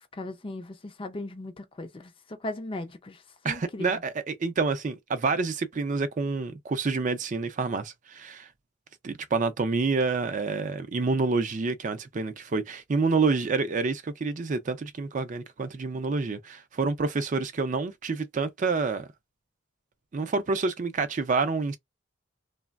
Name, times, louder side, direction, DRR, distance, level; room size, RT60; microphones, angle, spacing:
voice 1, 0.0-3.9, left 2 dB, 25° left, 0.4 m, -38 dB
voice 2, 3.4-8.5 9.0-19.1 20.1-21.8, right 4 dB, 40° right, 0.4 m, -28 dB
3.1 x 2.0 x 2.3 m
head